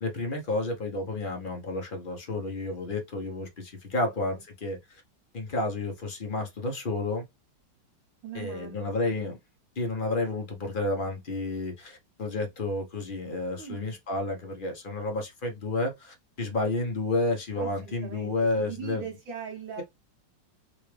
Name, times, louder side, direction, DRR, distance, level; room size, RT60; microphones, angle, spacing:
voice 1, 0.0-5.0 5.3-7.2 8.3-9.4 9.8-19.0, left 2 dB, 40° left, 0.8 m, -31 dB
voice 2, 8.2-9.3 13.6-14.0 17.6-19.8, right 9 dB, 80° right, 1.8 m, -41 dB
4.0 x 2.6 x 3.2 m
omnidirectional pair, 2.0 m